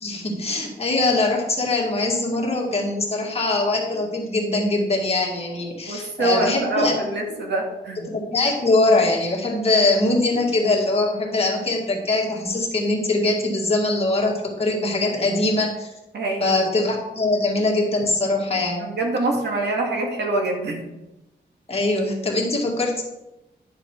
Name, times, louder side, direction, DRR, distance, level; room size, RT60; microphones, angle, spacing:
voice 1, 0.0-7.0 8.1-15.9 16.4-18.9 21.7-23.0, left 2 dB, 35° left, -1 dB, 2.2 m, -22 dB
voice 2, 5.9-8.1 16.1-16.6 18.8-20.9, right 2 dB, 75° right, 1 dB, 2.1 m, -25 dB
11.0 x 6.9 x 4.6 m, 0.95 s
wide cardioid pair, 150°, 18 cm